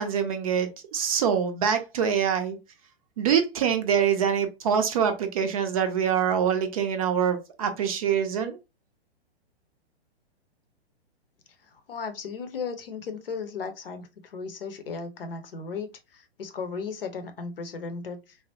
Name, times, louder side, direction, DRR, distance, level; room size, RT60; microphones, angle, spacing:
voice 1, 0.0-2.6 3.2-8.6, right 7 dB, 35° right, 0.5 m, -25 dB
voice 2, 11.6-18.4, left 5 dB, 60° left, 0.7 m, -36 dB
3.3 x 2.0 x 2.8 m
figure-of-eight pair, 110°, 31 cm